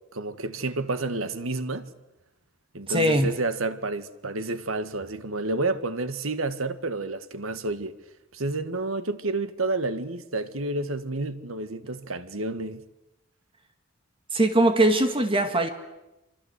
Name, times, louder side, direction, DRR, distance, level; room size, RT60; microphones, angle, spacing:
voice 1, 0.1-1.9 2.7-8.0 8.3-12.8, right 2 dB, 85° right, 1.6 m, -30 dB
voice 2, 2.9-3.3 14.3-15.7, right 1 dB, 25° right, 2.0 m, -21 dB
28.0 x 25.5 x 8.2 m
head